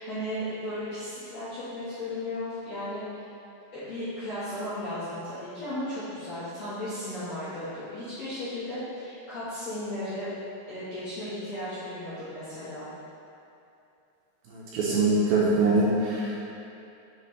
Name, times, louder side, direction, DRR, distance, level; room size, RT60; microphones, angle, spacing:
voice 1, 0.0-3.3 3.7-10.3 10.7-12.9, left 1 dB, 60° left, -14 dB, 1.7 m, -35 dB
voice 2, 14.5-16.4, right 2 dB, 75° right, -6 dB, 2.4 m, -24 dB
8.2 x 5.1 x 3.3 m, 2.7 s
omnidirectional pair, 5.0 m